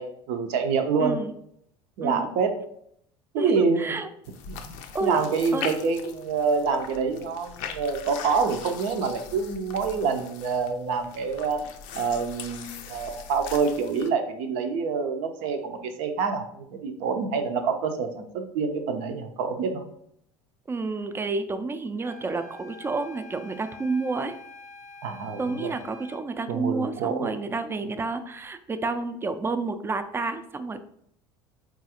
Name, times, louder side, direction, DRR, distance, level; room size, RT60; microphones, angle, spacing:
voice 1, 0.0-1.2 2.0-2.6 3.3-4.0 4.5-4.6 5.0-11.6 11.9-19.9 25.0-25.8 26.5-27.3, right 5 dB, 70° right, 6 dB, 0.5 m, -27 dB
voice 2, 1.0-1.3 2.0-2.3 3.4-4.1 4.9-5.2 5.5-5.7 20.7-24.3 25.4-30.8, right 3 dB, 15° right, 9 dB, 0.4 m, -30 dB
sound 1, 4.2-14.1, left 7 dB, 70° left, 0.4 m, -41 dB
sound 2, 22.0-26.3, left 3 dB, 5° left, 0.8 m, -46 dB
3.8 x 2.4 x 2.8 m, 0.70 s
hypercardioid pair, 75°, 14 cm